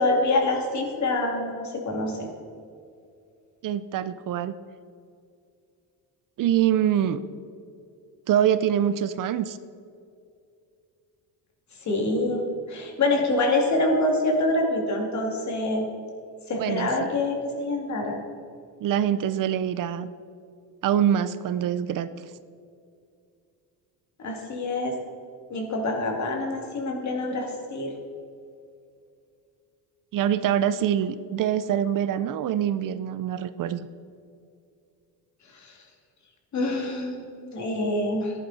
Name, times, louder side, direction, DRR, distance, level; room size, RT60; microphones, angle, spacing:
voice 1, 0.0-2.3 11.8-12.4 12.7-15.9 16.5-18.2 24.2-25.0 25.5-27.9 35.5-35.8 36.5-38.3, left 2 dB, 40° left, 2 dB, 2.6 m, -26 dB
voice 2, 3.6-4.5 6.4-7.2 8.3-9.6 16.6-17.1 18.8-20.1 20.8-22.1 30.1-33.9, right 10 dB, 50° right, 14 dB, 0.6 m, -24 dB
14.0 x 11.0 x 4.2 m, 2.4 s
cardioid pair, 140°, 42 cm